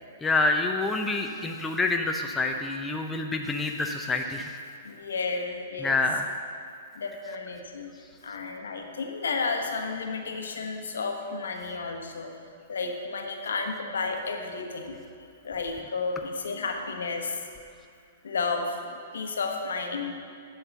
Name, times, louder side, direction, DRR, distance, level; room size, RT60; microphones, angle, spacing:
voice 1, 0.2-4.5 5.8-6.3, left 3 dB, 10° left, 2 dB, 0.6 m, -27 dB
voice 2, 4.8-6.0 6.9-7.9 8.2-12.3 12.7-15.0 15.4-17.3 18.2-18.7 19.1-20.1, left 4 dB, 70° left, 3 dB, 1.2 m, -32 dB
11.0 x 4.6 x 6.9 m, 2.3 s
figure-of-eight pair, 110°, 0 cm